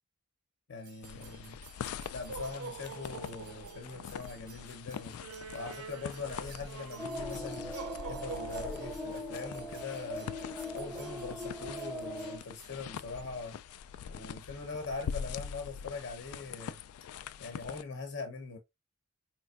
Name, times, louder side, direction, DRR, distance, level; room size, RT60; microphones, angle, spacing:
voice 1, 0.7-1.6 2.1-5.2 5.5-7.8 8.1-10.3 10.7-13.6 14.1-16.8 17.4-18.6, left 4 dB, 60° left, 0.8 m, -42 dB
sound 1, 0.8-12.8, right 6 dB, 85° right, 0.5 m, -48 dB
sound 2, 1.0-17.8, left 8 dB, 90° left, 0.3 m, -44 dB
sound 3, 7.0-12.4, equal, ahead, 0.5 m, -40 dB
4.3 x 3.2 x 2.4 m
head